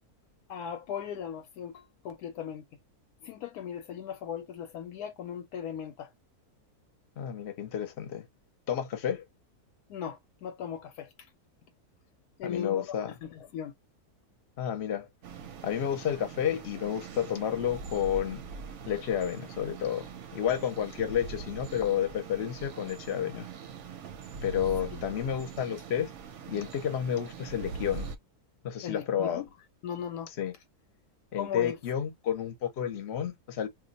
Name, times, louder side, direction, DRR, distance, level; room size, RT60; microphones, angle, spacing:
voice 1, 0.5-2.6 3.2-6.1 9.9-11.1 12.4-12.9 13.2-13.7 24.9-25.0 28.8-29.4 29.8-30.3 31.4-31.7, left 8 dB, 85° left, 1.1 m, -38 dB
voice 2, 7.2-8.3 8.7-9.2 12.4-13.1 14.6-15.1 15.6-18.4 18.9-23.5 24.4-26.1 26.5-28.1 28.6-29.4 30.4-30.6 31.3-33.7, left 9 dB, 55° left, 0.9 m, -31 dB
sound 1, 15.2-28.2, right 5 dB, 65° right, 0.8 m, -42 dB
2.5 x 2.2 x 3.8 m
omnidirectional pair, 1.6 m